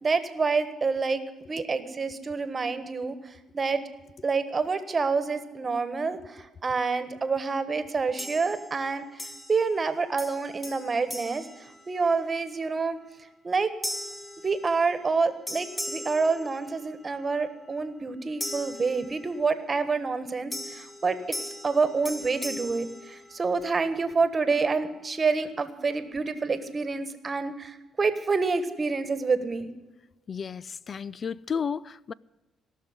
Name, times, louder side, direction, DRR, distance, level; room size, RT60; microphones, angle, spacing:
voice 1, 0.0-3.8 4.2-11.4 11.9-13.0 13.4-13.7 14.4-21.4 21.6-29.7, right 4 dB, 35° right, 1.4 m, -27 dB
sound 1, 8.2-8.8 9.2-9.9 10.2-12.3 12.8-13.1 13.8-15.2 15.5-17.1 18.4-19.6 20.5-23.8, left 1 dB, 20° left, 2.0 m, -39 dB
voice 2, 30.3-32.1, left 6 dB, 45° left, 0.4 m, -33 dB
17.5 x 6.5 x 9.6 m
cardioid pair, 90°, 0 cm